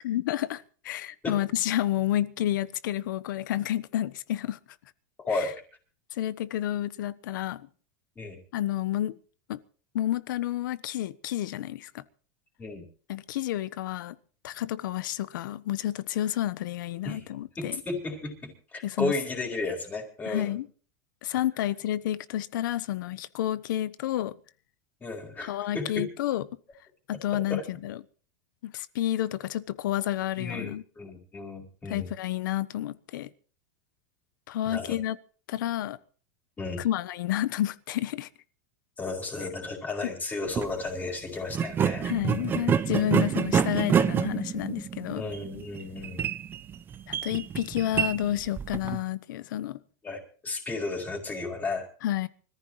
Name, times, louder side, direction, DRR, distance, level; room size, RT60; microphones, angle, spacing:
voice 1, 0.0-4.6 5.3-5.5 6.2-7.7 8.5-9.2 9.5-9.6 9.9-11.9 13.1-14.1 14.4-17.8 18.8-19.1 20.3-20.7 21.2-24.3 25.4-26.4 27.1-28.0 28.6-30.8 31.9-33.3 34.5-35.2 35.5-36.0 36.8-38.3 40.0-40.1 42.0-45.2 47.1-49.8 52.0-52.3, left 12 dB, 75° left, 1.1 m, -30 dB
voice 2, 5.2-5.5 8.2-8.4 12.6-12.8 17.0-17.2 17.6-20.5 25.0-26.1 27.5-27.6 30.4-32.1 34.7-35.0 36.6-36.8 39.0-42.6 45.1-46.2 50.0-51.9, left 3 dB, 15° left, 4.5 m, -34 dB
sound 1, 40.4-40.7 41.5-49.0, right 8 dB, 20° right, 0.7 m, -28 dB
25.0 x 14.5 x 3.2 m
supercardioid pair, 155°, 11 cm